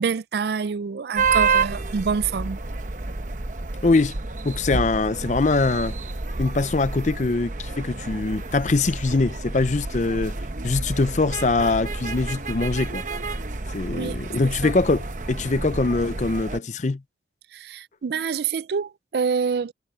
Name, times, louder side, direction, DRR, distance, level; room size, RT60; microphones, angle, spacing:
voice 1, 0.0-2.6 13.9-14.2 14.6-14.7 17.5-19.7, right 6 dB, 60° right, 0.4 m, -26 dB
sound 1, 1.1-16.6, right 4 dB, 45° right, 0.9 m, -29 dB
voice 2, 3.8-4.2 4.4-6.0 6.4-13.0 13.7-17.0, left 3 dB, 40° left, 0.5 m, -23 dB
head